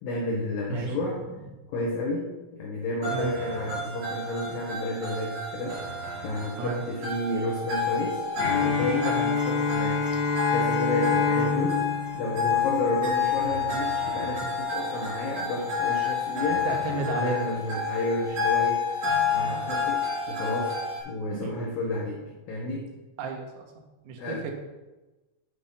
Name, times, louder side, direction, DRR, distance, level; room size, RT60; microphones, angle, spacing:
voice 1, 0.0-1.2 1.7-5.9 6.2-8.2 8.6-9.1 9.4-10.1 10.5-11.8 12.1-16.7 16.9-20.8 21.1-22.9 24.2-24.5, left 1 dB, 80° left, -2 dB, 2.1 m, -31 dB
sound 1, 3.0-21.0, left 6 dB, 50° right, 4.1 m, -29 dB
Bowed string instrument, 8.4-13.3, left 4 dB, 40° left, 1.6 m, -27 dB
voice 2, 16.6-17.6 21.3-21.6 23.2-23.7 24.0-24.5, right 5 dB, 75° right, 1 dB, 3.3 m, -33 dB
8.8 x 5.1 x 5.6 m, 1.1 s
omnidirectional pair, 5.8 m